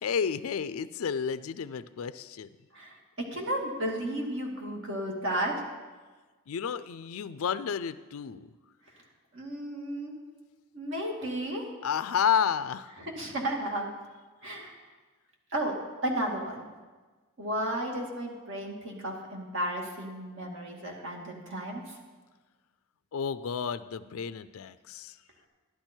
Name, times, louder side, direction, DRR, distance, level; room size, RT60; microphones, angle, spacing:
voice 1, 0.0-2.5 6.5-8.5 11.8-12.9 23.1-25.2, left 7 dB, 75° left, 14 dB, 0.4 m, -31 dB
voice 2, 3.3-5.5 9.3-10.1 10.7-11.6 13.0-13.9 14.4-14.8 15.5-15.7 16.0-16.7 17.4-22.0, right 1 dB, 60° right, 0 dB, 2.3 m, -33 dB
12.0 x 11.5 x 4.5 m, 1.3 s
head